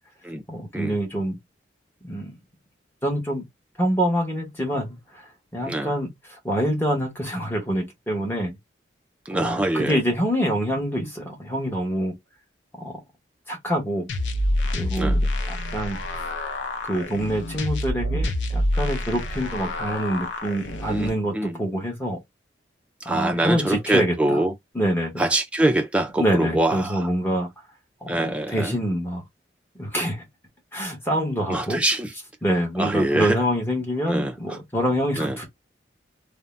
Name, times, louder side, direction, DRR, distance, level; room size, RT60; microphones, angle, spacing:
voice 1, 0.5-1.4 2.0-2.4 3.0-3.5 3.8-8.6 9.3-12.1 12.7-12.9 13.5-14.1 14.7-16.0 16.8-22.2 23.0-24.4 24.7-25.2 26.2-27.5 28.0-29.2 29.8-30.3 30.7-31.8 32.4-35.5, equal, 10° left, 0.9 m, -26 dB
voice 2, 5.6-5.9 9.3-10.0 15.0-15.2 20.9-21.6 23.0-24.5 25.2-27.1 28.1-28.8 31.1-31.2 31.5-32.1 32.8-33.4 34.1-34.6 35.2-35.4, right 1 dB, 5° right, 0.4 m, -24 dB
sound 1, 14.1-21.1, left 1 dB, 80° left, 0.5 m, -27 dB
2.6 x 2.0 x 3.1 m
head